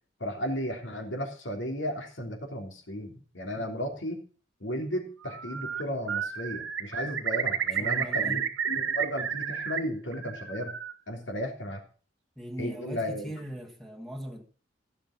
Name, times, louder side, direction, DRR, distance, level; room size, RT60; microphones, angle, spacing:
voice 1, 0.2-4.2 4.6-10.7 11.1-11.8 12.6-13.3, equal, 70° left, 3.2 m, -34 dB
Bird, 5.2-5.8 6.1-9.8 10.1-10.9, right 7 dB, 80° right, 1.3 m, -31 dB
voice 2, 7.8-8.5 12.4-14.4, equal, ahead, 1.5 m, -39 dB
16.0 x 7.3 x 5.8 m
head